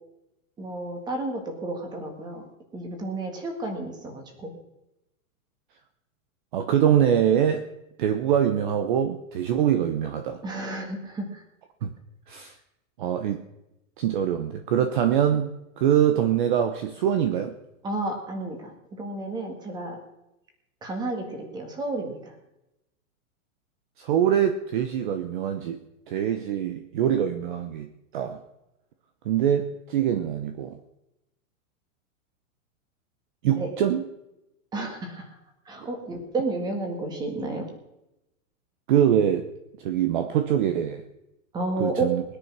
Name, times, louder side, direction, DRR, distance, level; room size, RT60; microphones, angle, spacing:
voice 1, 0.6-2.4 2.7-4.6 10.4-11.4 17.8-20.0 20.8-22.3 33.6-33.7 34.7-35.4 35.7-37.6 41.5-42.1, right 2 dB, 10° right, 4 dB, 1.8 m, -31 dB
voice 2, 6.5-7.7 8.0-10.4 11.8-11.9 12.3-12.5 13.0-13.4 14.0-17.6 24.0-25.8 26.1-28.4 29.2-30.8 33.4-34.0 38.9-39.5 39.8-41.0 41.8-42.2, right 9 dB, 35° right, 9 dB, 0.9 m, -24 dB
20.0 x 10.0 x 6.1 m, 0.90 s
supercardioid pair, 175°, 42 cm